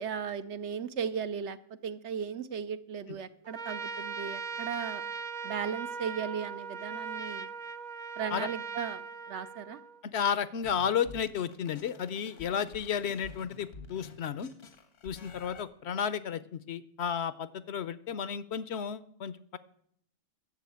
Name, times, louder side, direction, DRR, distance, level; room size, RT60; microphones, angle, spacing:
voice 1, 0.0-1.6 1.8-5.0 5.4-7.5 8.2-9.8, right 7 dB, 70° right, 11 dB, 1.0 m, -36 dB
Trumpet, 3.4-10.0, right 6 dB, 50° right, 0.5 m, -39 dB
voice 2, 10.1-14.5 15.0-19.6, left 8 dB, 65° left, 15 dB, 0.9 m, -33 dB
sound 1, 10.6-15.6, left 4 dB, 80° left, 1.5 m, -50 dB
11.5 x 7.3 x 8.4 m, 0.70 s
omnidirectional pair, 1.2 m